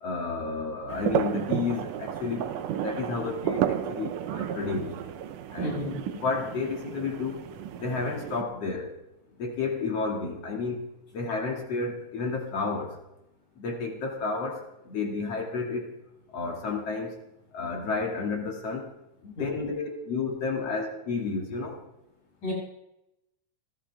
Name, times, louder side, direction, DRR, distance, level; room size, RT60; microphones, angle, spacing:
voice 1, 0.0-4.9 5.5-5.8 6.0-7.4 7.8-9.0 9.4-10.8 11.1-13.0 13.6-15.9 16.3-17.2 17.5-18.9 19.2-21.8, left 4 dB, 50° left, 0 dB, 3.2 m, -31 dB
sound 1, 0.9-8.4, right 10 dB, 80° right, 2.4 m, -32 dB
voice 2, 5.6-5.9 19.4-19.7 22.4-22.5, left 1 dB, 85° left, -4 dB, 9.1 m, -33 dB
27.5 x 13.0 x 3.5 m, 0.88 s
omnidirectional pair, 3.6 m